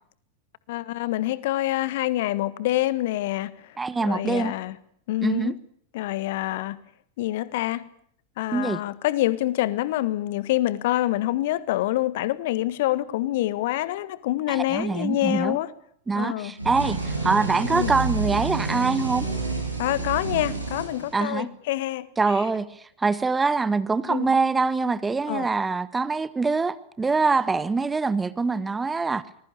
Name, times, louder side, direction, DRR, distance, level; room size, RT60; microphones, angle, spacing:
voice 1, 0.7-3.5 4.0-4.8 5.1-5.6 5.9-6.8 7.2-7.9 8.4-15.7 16.1-16.5 17.7-17.9 19.8-22.1 24.1-24.3 25.3-25.5, left 15 dB, 50° left, 1.4 m, -26 dB
voice 2, 3.8-4.5 5.2-5.5 8.5-8.8 14.5-15.6 16.1-19.3 21.1-21.5 22.2-22.7 23.0-29.2, right 4 dB, 10° right, 1.3 m, -24 dB
sound 1, 16.6-21.5, right 3 dB, 85° right, 6.7 m, -29 dB
25.0 x 21.0 x 8.5 m
figure-of-eight pair, 90°, 0 cm